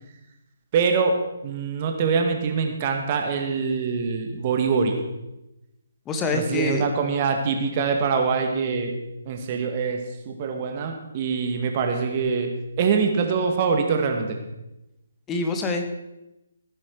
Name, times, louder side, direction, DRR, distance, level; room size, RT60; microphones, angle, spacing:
voice 1, 0.7-1.2 1.4-4.9 6.3-8.9 9.3-12.5 12.8-14.4, right 5 dB, 35° right, 4 dB, 2.0 m, -24 dB
voice 2, 6.1-6.9 15.3-15.9, left 3 dB, 15° left, 5 dB, 1.5 m, -25 dB
17.0 x 10.0 x 4.7 m, 0.94 s
figure-of-eight pair, 140°, 0 cm